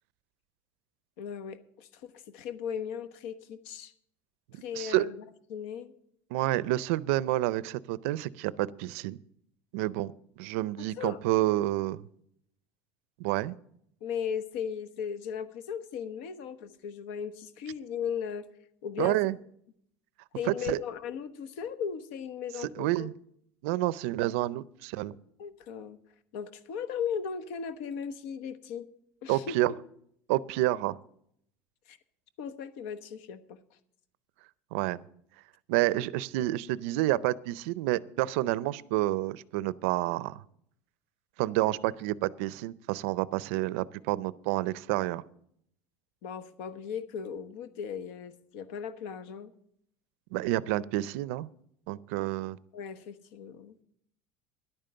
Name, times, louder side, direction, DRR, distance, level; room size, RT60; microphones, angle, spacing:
voice 1, 1.2-3.9 4.6-5.2 5.5-5.9 11.0-11.2 14.0-18.5 18.8-19.2 20.3-23.1 25.4-26.0 26.3-28.9 29.2-29.6 31.9-32.0 32.4-33.6 46.2-49.5 52.7-53.8, left 7 dB, 70° left, 13 dB, 1.1 m, -37 dB
voice 2, 4.5-5.1 6.3-9.2 9.7-10.1 10.4-12.0 13.2-13.6 19.0-19.4 20.7-20.8 22.6-23.1 23.6-25.1 29.3-29.7 30.3-31.0 34.7-35.0 35.7-40.4 41.4-45.2 50.3-51.5 51.9-52.6, right 17 dB, 70° right, 20 dB, 0.5 m, -29 dB
11.0 x 9.0 x 6.7 m, 0.69 s
cardioid pair, 165°, 7 cm